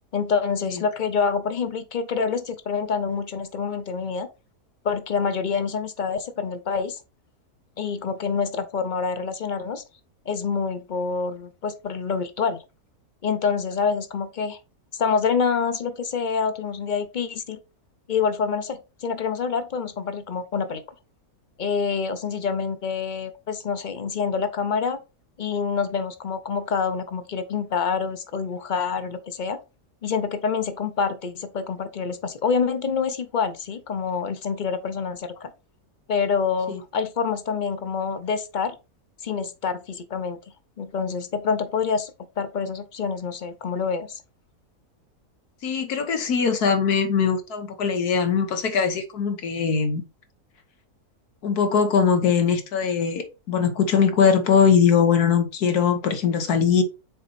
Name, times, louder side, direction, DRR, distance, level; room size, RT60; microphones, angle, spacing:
voice 1, 0.1-4.3 4.8-7.0 7.8-9.8 10.3-12.6 13.2-14.6 15.0-17.6 18.1-20.8 21.6-25.0 25.4-29.6 30.0-35.5 36.1-38.7 39.2-40.4 40.8-42.1 42.4-44.2, left 5 dB, 40° left, 0.7 m, -26 dB
voice 2, 45.6-50.0 51.4-56.8, left 6 dB, 85° left, 1.7 m, -21 dB
6.7 x 4.2 x 4.1 m
omnidirectional pair, 1.6 m